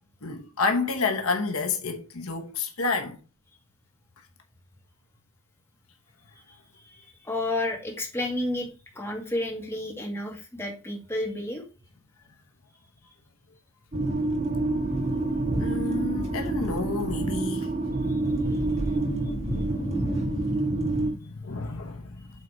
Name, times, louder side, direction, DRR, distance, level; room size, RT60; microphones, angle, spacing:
voice 1, 0.2-3.2 15.6-18.0 19.0-19.2 19.7-19.8 20.1-20.3 21.1-22.3, left 4 dB, 70° left, 1.1 m, -30 dB
voice 2, 6.7-8.7 8.9-11.6 18.5-18.6, left 1 dB, 10° left, 2.3 m, -31 dB
sound 1, 13.9-21.1, right 2 dB, 30° right, 2.1 m, -27 dB
8.4 x 4.0 x 4.6 m
head